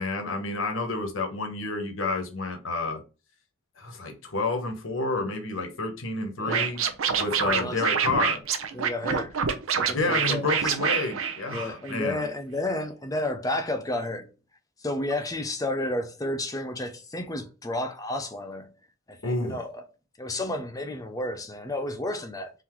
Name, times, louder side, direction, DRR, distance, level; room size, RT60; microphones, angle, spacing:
voice 1, 0.0-3.0 3.8-6.8 7.2-8.4 9.9-12.3 19.2-19.6, left 3 dB, 70° left, 1.0 m, -29 dB
voice 2, 6.4-6.7 7.1-7.8 8.1-8.3 8.7-9.4 9.8-10.8 11.5-14.3 14.8-18.7 19.1-19.8 20.2-22.5, left 1 dB, 15° left, 0.6 m, -32 dB
Scratching (performance technique), 6.5-12.0, right 7 dB, 75° right, 0.6 m, -26 dB
3.9 x 2.7 x 4.5 m
head